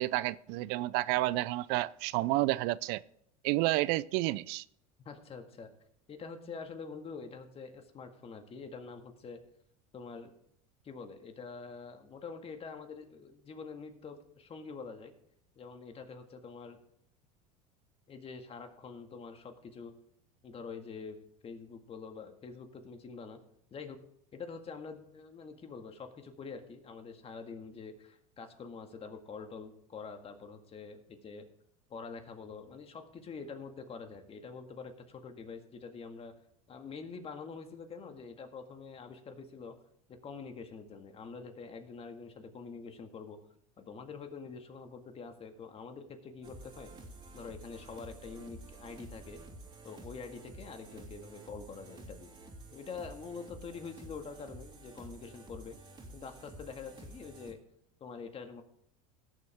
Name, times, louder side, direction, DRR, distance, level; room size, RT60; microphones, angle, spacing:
voice 1, 0.0-3.0 3.4-4.6, right 18 dB, 60° right, 0.4 m, -30 dB
voice 2, 5.1-5.7 6.1-9.4 9.9-10.3 10.8-15.1 15.6-16.8 18.1-19.9 20.4-21.2 21.4-23.4 23.7-24.0 24.3-31.5 31.9-36.3 36.7-39.8 40.2-43.4 43.8-46.9 47.3-49.4 49.8-52.3 52.7-55.8 56.1-57.6 58.0-58.6, left 5 dB, 30° left, 1.9 m, -46 dB
sound 1, 46.4-57.5, right 2 dB, 25° right, 2.7 m, -51 dB
17.5 x 7.4 x 3.6 m
supercardioid pair, 105°, 19 cm